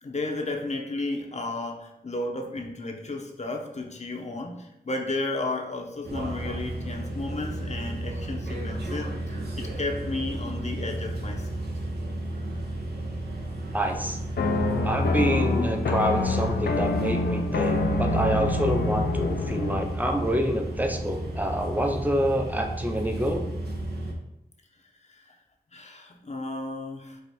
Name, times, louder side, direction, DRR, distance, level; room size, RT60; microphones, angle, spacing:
voice 1, 0.0-9.2 9.5-11.6 25.3-25.4 25.7-27.2, left 2 dB, 45° left, 2 dB, 0.7 m, -33 dB
sound 1, 6.0-24.1, right 1 dB, 80° right, 0.9 m, -33 dB
voice 2, 13.7-14.2 14.8-23.5, equal, 10° right, 4 dB, 0.6 m, -27 dB
sound 2, 14.4-19.9, left 3 dB, 80° left, 0.4 m, -26 dB
4.8 x 2.5 x 4.1 m, 0.82 s
wide cardioid pair, 75°, 17 cm